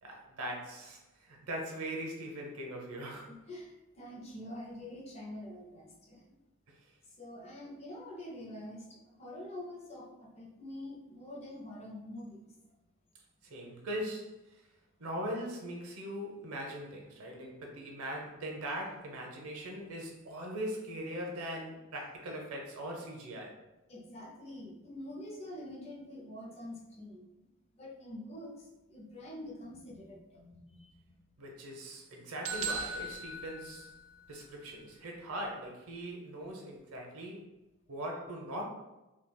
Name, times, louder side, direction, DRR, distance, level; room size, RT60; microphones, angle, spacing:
voice 1, 0.0-3.3 6.7-6.8 13.4-14.6 15.0-23.6 31.4-33.9 34.3-37.5 37.9-38.6, right 1 dB, 85° right, 0 dB, 0.7 m, -40 dB
voice 2, 3.3-6.2 7.2-12.5 23.9-27.3 27.7-31.2 33.7-33.8, left 1 dB, 30° left, -1 dB, 0.5 m, -46 dB
sound 1, 32.4-34.4, right 3 dB, 60° right, 0.4 m, -38 dB
3.9 x 2.3 x 2.2 m, 1.0 s
head